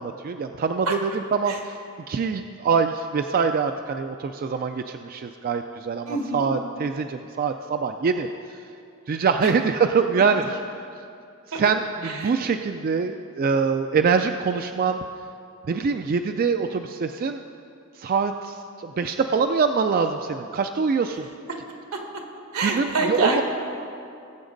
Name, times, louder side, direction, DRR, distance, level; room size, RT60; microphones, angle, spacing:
voice 1, 0.0-1.8 2.1-8.6 9.1-10.6 11.6-15.0 15.7-17.4 18.0-21.3 22.6-23.4, right 5 dB, 40° right, 7 dB, 0.3 m, -24 dB
voice 2, 6.1-6.4 9.4-9.5 11.5-11.7 12.0-12.3 21.5-21.6 21.9-22.2 22.5-23.4, right 3 dB, 85° right, 2 dB, 1.7 m, -27 dB
19.0 x 8.0 x 3.9 m, 2.5 s
head